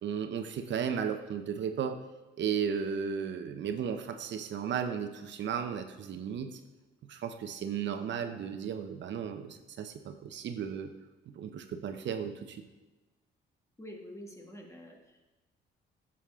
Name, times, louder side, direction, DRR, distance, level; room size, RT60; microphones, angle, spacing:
voice 1, 0.0-2.0 2.4-6.6 7.1-10.9 11.3-12.6, right 7 dB, 65° right, 7 dB, 0.8 m, -35 dB
voice 2, 13.8-15.2, equal, 15° left, 2 dB, 1.7 m, -47 dB
11.0 x 7.2 x 3.6 m, 1.2 s
cardioid pair, 90°, 20 cm